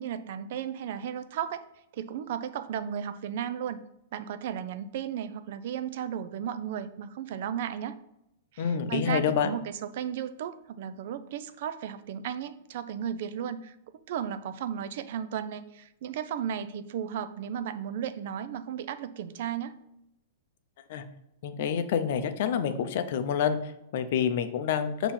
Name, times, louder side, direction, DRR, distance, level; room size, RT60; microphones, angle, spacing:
voice 1, 0.0-1.6 1.9-3.8 4.1-7.9 8.5-13.8 14.1-19.8, right 9 dB, 60° right, 12 dB, 0.5 m, -34 dB
voice 2, 8.6-9.5 20.9-21.0 21.4-25.1, left 7 dB, 55° left, 9 dB, 0.7 m, -28 dB
6.7 x 3.0 x 5.5 m, 0.85 s
hypercardioid pair, 150°, 0 cm